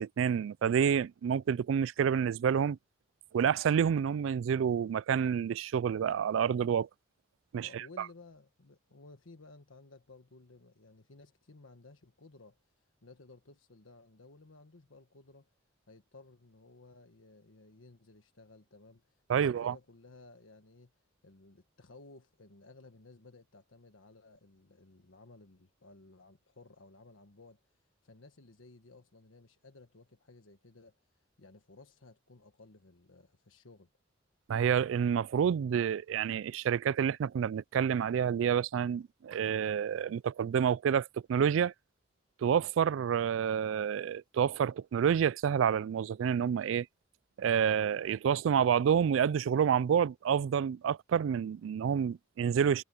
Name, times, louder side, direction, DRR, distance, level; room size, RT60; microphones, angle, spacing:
voice 1, 0.0-2.8 3.3-6.9 7.5-7.8 19.3-19.7 34.5-41.7 42.4-46.9 47.4-52.8, right 8 dB, 75° right, 0.3 m, -28 dB
voice 2, 7.6-12.7 13.0-15.5 15.9-20.9 21.2-27.6 28.0-33.9, left 3 dB, 90° left, 1.3 m, -57 dB
head